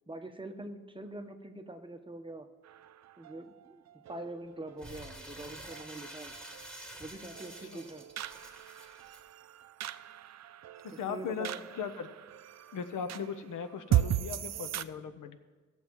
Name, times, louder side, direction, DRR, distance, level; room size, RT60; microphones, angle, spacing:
voice 1, 0.1-2.5 3.2-3.8 4.1-6.3 7.0-8.0 10.9-11.6, right 2 dB, 15° right, 6 dB, 1.0 m, -44 dB
sound 1, 2.6-14.8, right 12 dB, 60° right, 0.5 m, -38 dB
Crumpling crinkling, 4.8-9.2, right 1 dB, 5° left, 2.2 m, -48 dB
voice 2, 10.8-11.5 11.7-12.1 12.7-15.4, left 6 dB, 75° left, 10 dB, 0.8 m, -38 dB
19.5 x 7.3 x 3.1 m, 1.3 s
cardioid pair, 75°, 31 cm